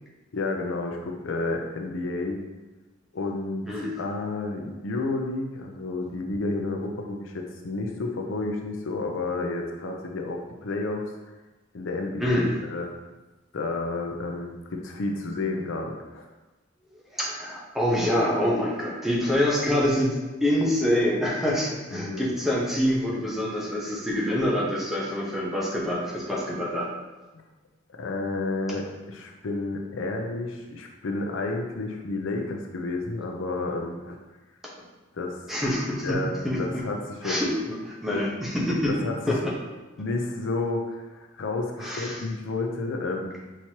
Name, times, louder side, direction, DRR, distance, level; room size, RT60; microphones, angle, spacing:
voice 1, 0.3-2.4 3.1-3.7 4.0-11.1 11.7-12.9 13.5-16.3 22.0-22.3 27.3-27.4 28.0-34.2 35.1-35.4 36.0-37.4 38.1-38.3 38.9-39.4 40.0-43.4, left 2 dB, 70° left, 2 dB, 0.5 m, -31 dB
voice 2, 12.2-12.5 17.1-20.1 20.4-26.9 35.5-36.2 36.4-36.8 37.2-38.9 39.3-39.5 41.8-42.2, left 1 dB, ahead, -4 dB, 0.8 m, -26 dB
5.8 x 3.1 x 2.8 m, 1.2 s
head